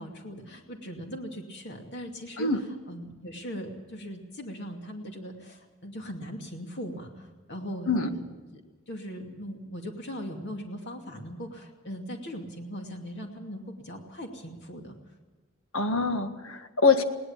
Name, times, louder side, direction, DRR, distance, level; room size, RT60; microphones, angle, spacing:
voice 1, 0.0-2.5 2.9-8.6 8.9-15.0, equal, 55° left, 2 dB, 2.5 m, -39 dB
voice 2, 15.7-17.0, left 4 dB, 75° left, 7 dB, 1.7 m, -24 dB
21.0 x 18.0 x 7.3 m, 1.3 s
head